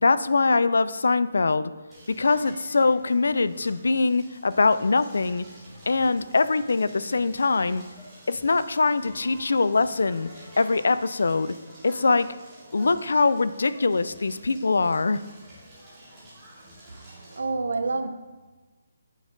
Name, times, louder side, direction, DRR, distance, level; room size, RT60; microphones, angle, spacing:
voice 1, 0.0-1.7 2.1-5.4 5.9-7.8 8.3-10.3 10.6-11.5 11.8-12.3 12.7-15.2, left 3 dB, 75° left, 15 dB, 0.3 m, -23 dB
Crackle, 1.9-17.4, right 1 dB, 5° right, 1.8 m, -49 dB
voice 2, 16.9-18.1, right 3 dB, 70° right, 9 dB, 0.6 m, -29 dB
9.0 x 4.2 x 3.8 m, 1.3 s
hypercardioid pair, 180°, 0 cm